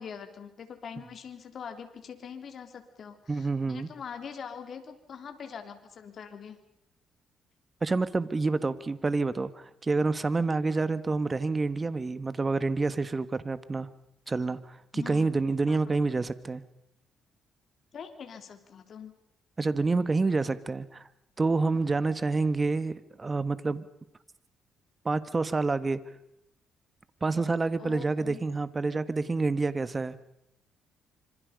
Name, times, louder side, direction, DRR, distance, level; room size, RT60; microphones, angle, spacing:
voice 1, 0.0-6.6 14.9-15.3 15.7-15.8 17.9-19.1 21.8-22.2 27.8-28.4, left 7 dB, 55° left, 6 dB, 3.6 m, -43 dB
voice 2, 3.3-3.9 7.8-13.9 14.3-16.6 19.6-21.1 21.4-23.8 25.0-26.0 27.2-30.2, right 3 dB, 25° right, 14 dB, 1.5 m, -28 dB
26.0 x 26.0 x 5.3 m, 0.81 s
cardioid pair, 90°, 0 cm